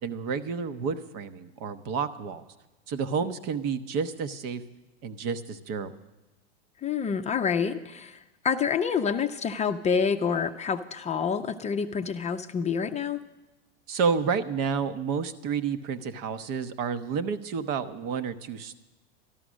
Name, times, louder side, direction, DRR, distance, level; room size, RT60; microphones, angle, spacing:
voice 1, 0.0-2.4 2.9-4.6 5.0-5.9 13.9-18.8, right 6 dB, 50° right, 10 dB, 0.9 m, -30 dB
voice 2, 6.8-13.2, left 6 dB, 20° left, 7 dB, 0.5 m, -28 dB
13.0 x 12.0 x 6.2 m, 1.1 s
hypercardioid pair, 100°, 32 cm